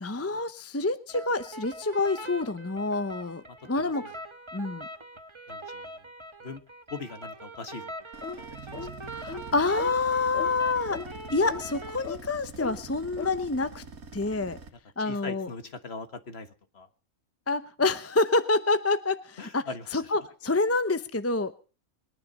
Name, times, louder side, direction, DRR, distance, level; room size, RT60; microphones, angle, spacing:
voice 1, 0.0-4.1 4.5-4.9 9.1-11.0 11.3-13.8 14.1-14.6 15.0-15.5 17.5-21.6, left 3 dB, 15° left, 12 dB, 0.6 m, -27 dB
sound 1, 1.1-12.1, right 1 dB, 20° right, 1.3 m, -43 dB
voice 2, 5.5-5.9 6.4-6.6 6.9-7.9 8.4-8.5 8.7-8.9 15.0-16.5 16.7-16.9 19.4-20.1, left 4 dB, 45° left, 10 dB, 1.6 m, -40 dB
sound 2, 8.1-14.7, right 4 dB, 85° right, 2.2 m, -45 dB
sound 3, 8.2-8.4 8.7-8.9 9.3-9.5 9.8-9.9 10.3-10.5 10.9-11.1 11.5-11.6 12.0-12.2 12.6-12.8 13.2-13.4, left 5 dB, 65° left, 1.7 m, -37 dB
22.0 x 10.5 x 5.4 m, 0.38 s
omnidirectional pair, 1.5 m